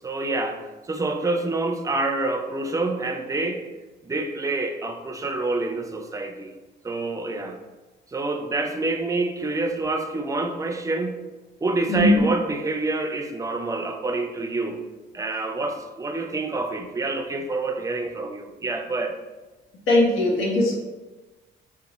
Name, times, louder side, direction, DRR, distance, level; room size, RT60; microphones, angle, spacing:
voice 1, 0.0-3.6 4.0-6.5 6.8-7.6 8.1-11.1 11.6-14.8 15.1-19.2, right 2 dB, 15° right, 5 dB, 0.4 m, -27 dB
voice 2, 11.9-12.3 19.9-20.7, left 1 dB, 85° left, -3 dB, 0.9 m, -19 dB
5.1 x 2.2 x 2.9 m, 1.2 s
cardioid pair, 90°, 20 cm